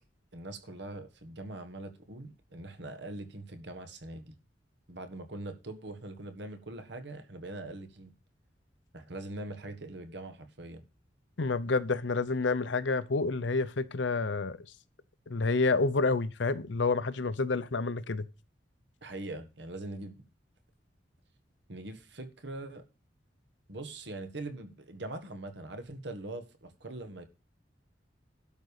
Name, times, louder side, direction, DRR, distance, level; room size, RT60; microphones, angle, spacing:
voice 1, 0.3-4.4 4.9-8.1 8.9-10.8 19.0-20.2 21.7-22.8 23.7-27.3, right 2 dB, 70° right, 1.6 m, -42 dB
voice 2, 11.4-14.6 15.3-18.3, left 3 dB, 75° left, 0.7 m, -29 dB
12.0 x 5.3 x 6.6 m
head